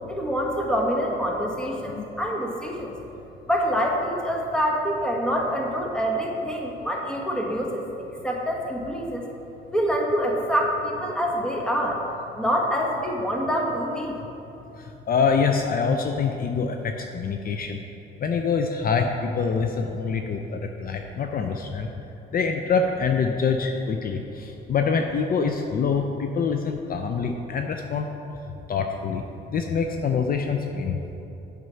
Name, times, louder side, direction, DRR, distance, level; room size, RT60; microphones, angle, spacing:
voice 1, 0.1-2.9 3.5-7.8 8.2-9.2 9.7-12.0 12.4-14.1, equal, 5° left, -1 dB, 1.3 m, -26 dB
voice 2, 14.8-17.8 18.2-21.9 22.3-28.1 28.7-29.2 29.5-31.0, left 5 dB, 50° left, 4 dB, 0.5 m, -25 dB
7.9 x 5.2 x 5.6 m, 3.0 s
cardioid pair, 90°, 20 cm